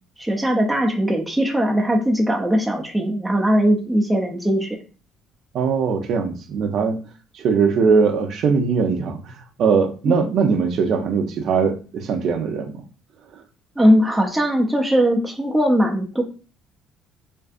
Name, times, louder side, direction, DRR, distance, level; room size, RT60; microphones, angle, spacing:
voice 1, 0.2-4.8 10.1-10.2 13.8-16.2, equal, 5° right, 0 dB, 0.5 m, -19 dB
voice 2, 5.5-7.0 7.3-9.3 9.6-12.7, right 5 dB, 60° right, 6 dB, 0.5 m, -20 dB
2.5 x 2.4 x 2.3 m, 0.36 s
supercardioid pair, 75°, 0 cm